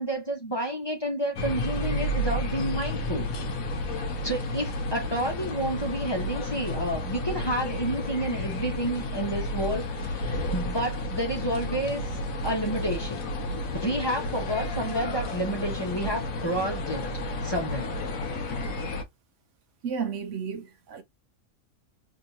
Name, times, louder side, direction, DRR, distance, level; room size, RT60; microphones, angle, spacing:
voice 1, 0.0-3.3 3.9-12.0 12.4-13.2 13.7-17.1 17.4-18.0, right 1 dB, 20° left, 0.9 m, -30 dB
sound 1, 1.4-19.0, left 1 dB, 80° left, 1.3 m, -31 dB
voice 2, 19.8-21.0, right 6 dB, 65° right, 1.0 m, -32 dB
3.6 x 2.8 x 2.6 m
omnidirectional pair, 1.4 m